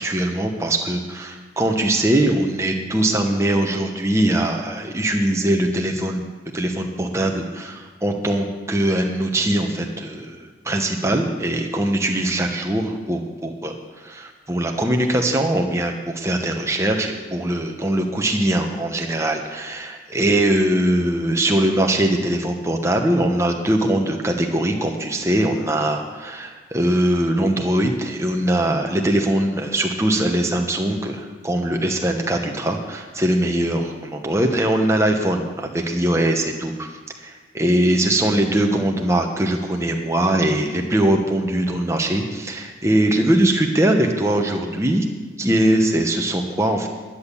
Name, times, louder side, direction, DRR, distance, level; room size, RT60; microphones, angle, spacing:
voice 1, 0.0-6.2 6.5-13.7 14.0-36.9 37.2-45.0 45.4-46.9, right 1 dB, 15° right, 2 dB, 1.1 m, -21 dB
10.5 x 10.0 x 7.1 m, 1.4 s
head